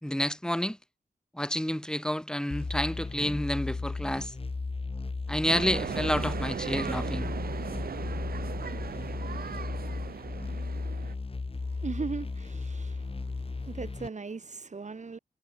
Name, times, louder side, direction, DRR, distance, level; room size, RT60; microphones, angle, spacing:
voice 1, 0.0-0.8 1.3-4.3 5.3-7.3, equal, 5° left, 1.7 m, -29 dB
sound 1, 2.5-14.1, left 3 dB, 40° left, 3.0 m, -35 dB
sound 2, 5.5-11.1, right 7 dB, 75° right, 1.4 m, -37 dB
voice 2, 11.7-15.2, right 4 dB, 50° right, 6.0 m, -38 dB
wide cardioid pair, 100°, 15 cm